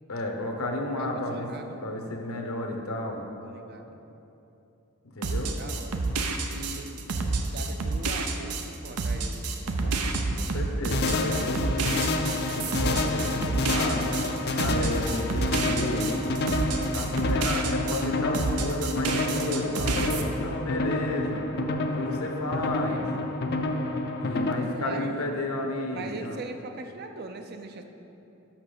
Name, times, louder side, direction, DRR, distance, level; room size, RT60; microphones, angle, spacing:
voice 1, 0.1-1.5 1.8-3.2 5.1-5.5 9.8-12.1 12.5-14.2 14.5-16.2 16.9-21.5 21.9-23.0 24.2-26.4, left 1 dB, 75° left, 2 dB, 1.0 m, -32 dB
voice 2, 1.0-1.8 3.4-4.0 5.3-6.0 6.5-7.0 7.4-10.0 24.7-25.4 25.9-27.9, right 3 dB, 45° right, 6 dB, 0.5 m, -41 dB
sound 1, 5.2-18.0 18.3-20.2, right 3 dB, 85° right, 0.7 m, -29 dB
sound 2, 10.9-24.5, left 2 dB, 45° left, 0.5 m, -29 dB
6.0 x 6.0 x 6.6 m, 3.0 s
head